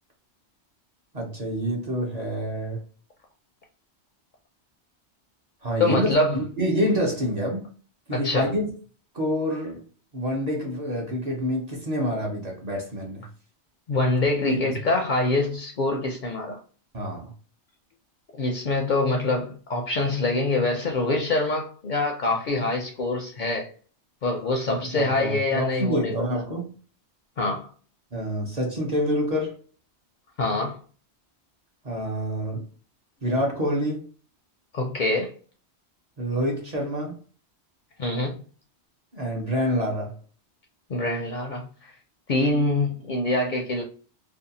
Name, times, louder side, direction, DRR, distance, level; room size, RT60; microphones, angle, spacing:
voice 1, 1.1-2.8 5.6-7.7 8.1-8.6 9.1-9.8 10.1-13.3 14.5-14.8 16.9-17.3 24.7-26.7 28.1-29.6 31.8-32.6 33.2-34.1 36.2-37.2 39.1-40.2, equal, 45° right, 0.7 m, -27 dB
voice 2, 5.8-6.4 8.1-8.5 13.9-16.6 18.4-23.7 24.2-26.3 27.4-27.7 30.4-30.8 34.7-35.3 38.0-38.4 40.9-41.9 42.3-43.8, left 2 dB, 55° left, 0.5 m, -25 dB
2.6 x 2.1 x 2.6 m
omnidirectional pair, 1.1 m